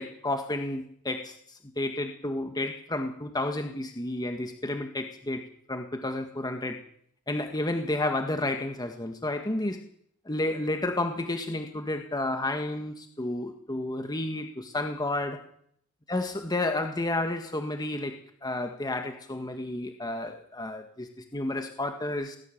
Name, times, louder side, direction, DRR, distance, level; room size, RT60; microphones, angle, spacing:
voice 1, 0.0-5.4 5.7-6.8 7.3-9.9 10.3-15.4 16.1-22.4, left 2 dB, 20° left, 5 dB, 1.7 m, -31 dB
19.0 x 19.0 x 7.3 m, 0.64 s
head